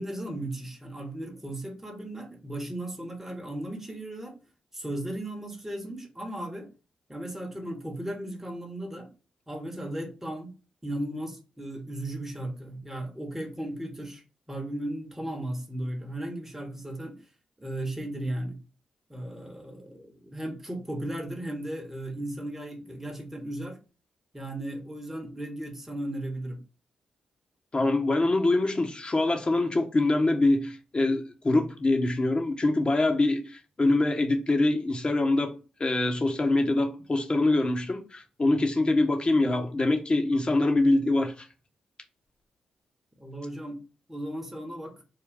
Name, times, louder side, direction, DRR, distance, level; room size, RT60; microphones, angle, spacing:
voice 1, 0.0-4.4 4.7-6.7 7.1-9.1 9.5-10.5 10.8-17.3 17.6-18.6 19.1-23.8 24.3-26.6 43.2-43.8 44.1-45.0, right 1 dB, 10° right, 1.1 m, -36 dB
voice 2, 27.7-35.5 35.8-41.4, left 2 dB, 35° left, 0.9 m, -24 dB
3.6 x 2.2 x 3.5 m
supercardioid pair, 45°, 3 cm